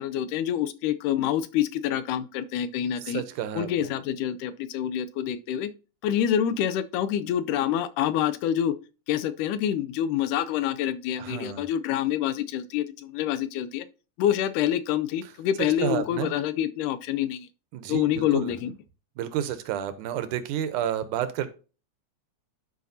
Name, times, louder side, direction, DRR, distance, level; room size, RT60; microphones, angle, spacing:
voice 1, 0.0-3.2 3.6-5.7 6.0-8.7 9.1-13.9 14.2-17.5 17.9-18.7, left 10 dB, 85° left, 2.1 m, -27 dB
voice 2, 3.0-3.9 11.2-11.7 15.2-15.3 15.6-16.3 17.7-18.6 19.2-21.5, right 10 dB, 80° right, 2.2 m, -31 dB
12.0 x 4.9 x 2.7 m
omnidirectional pair, 3.6 m